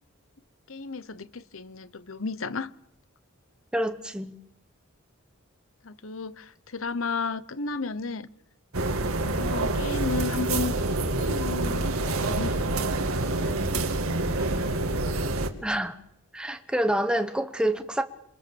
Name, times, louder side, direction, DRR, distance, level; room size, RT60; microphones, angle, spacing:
voice 1, 0.7-2.7 5.8-8.3 9.0-10.7 11.1-12.6 13.7-14.6, left 4 dB, 70° left, 1.0 m, -34 dB
voice 2, 3.7-4.3 15.6-16.0 16.3-18.0, right 1 dB, 5° right, 1.1 m, -27 dB
sound 1, 8.7-15.5, right 2 dB, 85° right, 2.1 m, -27 dB
28.0 x 22.5 x 7.1 m
head